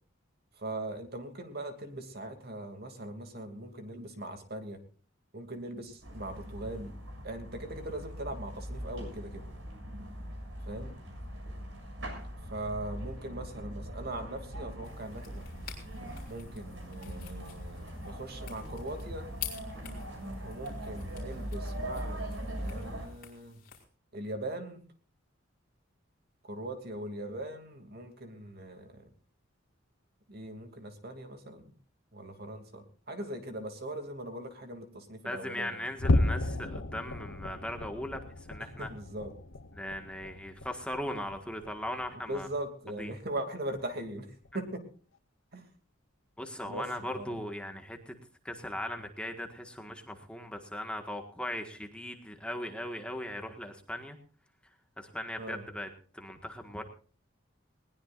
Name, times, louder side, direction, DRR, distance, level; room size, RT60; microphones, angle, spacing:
voice 1, 0.5-4.8 5.3-6.9 7.2-9.5 10.6-10.9 12.5-15.4 16.3-19.3 20.4-23.6 24.1-24.8 26.4-29.1 30.3-31.7 32.1-35.9 38.6-39.3 42.3-44.9 45.5-45.7 46.6-47.3 55.4-55.6, right 1 dB, 55° right, 6 dB, 2.7 m, -40 dB
sound 1, 6.0-23.1, equal, 70° right, 6.8 m, -41 dB
sound 2, 14.8-23.8, left 10 dB, 50° left, 5.0 m, -49 dB
voice 2, 35.2-38.9 39.8-42.5 43.0-43.1 46.4-48.1 48.4-54.2 55.0-55.9 56.1-56.8, left 1 dB, 5° left, 4 dB, 1.7 m, -38 dB
sound 3, 36.0-42.7 43.0-43.3 43.7-43.9 44.4-44.6, left 2 dB, 80° left, 0.9 m, -34 dB
20.5 x 19.5 x 2.6 m, 0.40 s
head